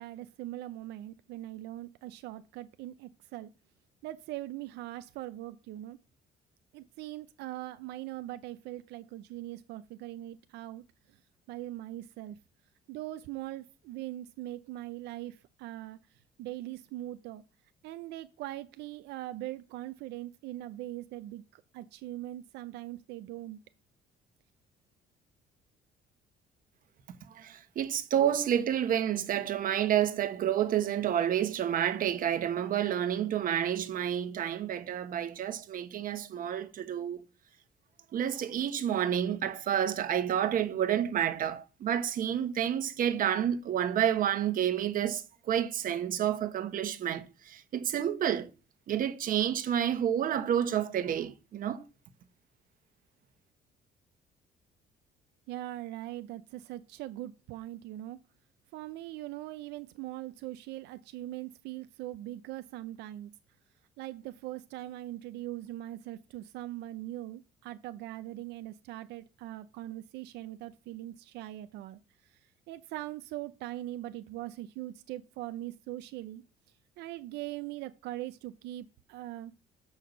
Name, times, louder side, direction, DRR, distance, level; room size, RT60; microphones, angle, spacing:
voice 1, 0.0-3.5 4.0-6.0 6.7-11.2 11.5-12.4 12.9-17.4 17.8-23.6 55.5-58.2 58.7-63.3 64.0-72.4 72.7-76.4 77.0-79.5, right 15 dB, 85° right, 0.6 m, -41 dB
voice 2, 27.3-37.2 38.1-48.5 48.9-51.8, right 10 dB, 55° right, 1.3 m, -29 dB
6.6 x 5.6 x 6.6 m
cardioid pair, 110°, 17 cm